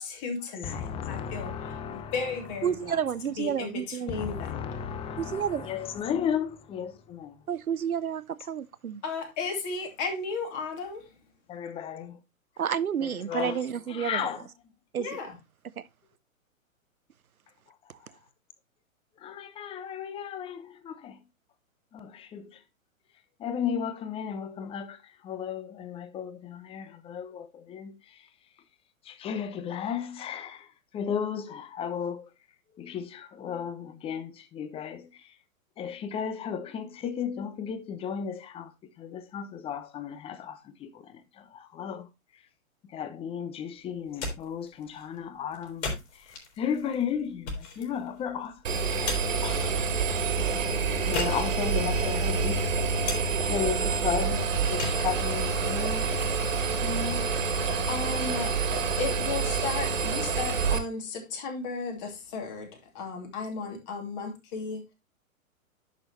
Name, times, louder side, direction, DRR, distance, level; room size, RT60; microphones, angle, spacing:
voice 1, 0.0-1.5 1.9-3.0 3.4-4.6 9.0-11.0 15.0-15.3 57.9-62.7 62.9-64.8, left 4 dB, 35° left, 2.7 m, -34 dB
voice 2, 0.6-2.6 4.1-7.5 11.5-12.2 13.0-14.5 17.7-17.9 19.2-21.2 21.9-22.6 23.4-28.3 29.0-32.3 32.7-35.4 35.8-42.4 42.8-48.6 48.9-49.1 49.4-50.2 51.0-53.1 53.4-56.1 56.8-57.4, left 8 dB, 15° left, 0.7 m, -35 dB
voice 3, 2.6-4.2 5.2-5.7 7.5-9.0 12.6-14.3 14.9-15.2 15.8-15.9, right 8 dB, 85° right, 0.7 m, -30 dB
sound 1, 43.9-57.9, left 3 dB, 50° left, 4.4 m, -40 dB
Engine, 48.6-60.8, right 5 dB, 65° right, 2.0 m, -27 dB
10.5 x 6.2 x 3.1 m
figure-of-eight pair, 115°, 42 cm